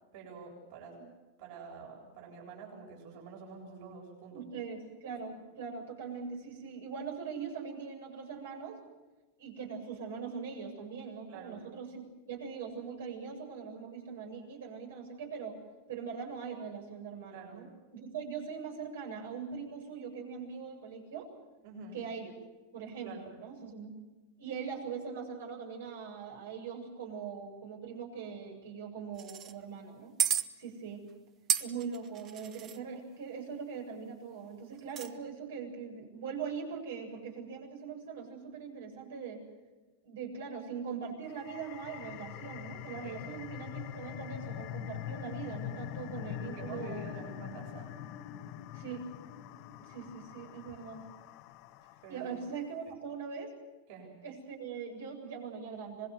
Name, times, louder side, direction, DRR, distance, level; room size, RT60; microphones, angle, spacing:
voice 1, 0.1-1.0 1.4-4.5 11.3-11.7 17.3-17.7 21.6-22.0 23.0-23.3 43.0-43.2 46.3-47.9 52.0-52.3 53.9-54.1, right 4 dB, 60° right, -1 dB, 7.9 m, -47 dB
voice 2, 4.3-8.8 9.4-15.6 15.9-17.7 17.9-21.3 21.9-22.3 22.7-23.9 24.4-30.2 30.6-31.0 31.6-39.4 40.0-47.0 48.7-49.0 49.8-51.0 52.1-53.5 54.2-56.1, right 6 dB, 85° right, 2 dB, 7.7 m, -41 dB
sound 1, 29.2-29.5 30.2-30.4 31.5-32.8 34.8-35.1, right 9 dB, 35° right, 1.2 m, -31 dB
sound 2, 41.2-52.4, left 11 dB, 50° left, 1.2 m, -43 dB
26.0 x 20.5 x 7.9 m, 1.2 s
supercardioid pair, 125°, 0 cm